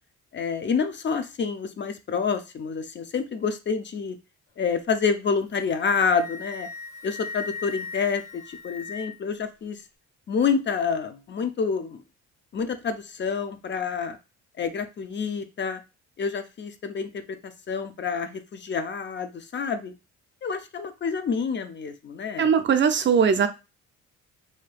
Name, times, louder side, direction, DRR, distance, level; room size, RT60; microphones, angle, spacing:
voice 1, 0.3-4.2 4.6-6.7 7.0-9.8 10.3-12.0 12.5-14.2 14.6-15.8 16.2-17.1 17.4-19.9 20.4-22.5, left 5 dB, 40° left, 0.4 m, -28 dB
Wind instrument woodwind instrument, 5.4-9.4, left 4 dB, 80° left, 0.8 m, -38 dB
voice 2, 22.4-23.5, right 7 dB, 40° right, 0.4 m, -20 dB
2.7 x 2.2 x 3.3 m
cardioid pair, 90°, 30 cm